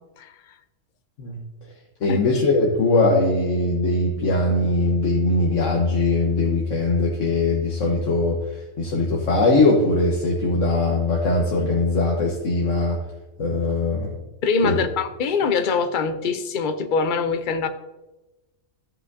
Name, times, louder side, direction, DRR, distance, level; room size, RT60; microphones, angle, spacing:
voice 1, 2.0-8.4 8.8-13.0 13.4-14.1 14.6-14.8, left 2 dB, 85° left, -1 dB, 1.5 m, -21 dB
voice 2, 14.4-17.7, left 4 dB, 50° left, 9 dB, 0.7 m, -23 dB
14.5 x 5.6 x 2.7 m, 1.0 s
omnidirectional pair, 1.3 m